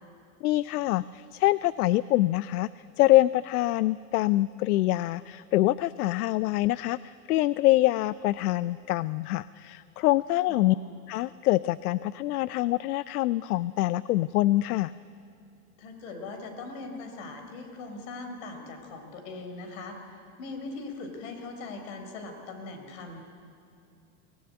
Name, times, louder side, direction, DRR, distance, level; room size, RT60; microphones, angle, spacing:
voice 1, 0.4-2.7 3.0-10.8 11.1-14.9, left 16 dB, 80° left, 18 dB, 0.6 m, -25 dB
voice 2, 10.5-11.0 15.8-20.0 20.4-23.2, left 3 dB, 60° left, 5 dB, 4.5 m, -40 dB
22.5 x 18.0 x 9.7 m, 2.5 s
supercardioid pair, 135°, 45 cm